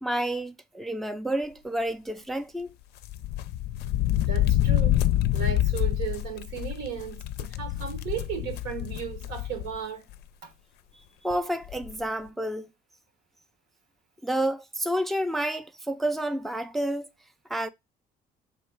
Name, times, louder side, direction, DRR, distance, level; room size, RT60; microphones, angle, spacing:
voice 1, 0.0-2.7 11.2-12.7 14.2-17.1 17.5-17.7, right 1 dB, ahead, 0.3 m, -29 dB
sound 1, 3.0-9.8 10.1-10.2 11.3-11.4 11.6-11.9, left 13 dB, 75° left, 0.4 m, -27 dB
voice 2, 4.2-5.0 5.3-10.0 10.4-10.5, right 8 dB, 85° right, 1.2 m, -35 dB
3.5 x 3.0 x 4.5 m
cardioid pair, 110°, 17 cm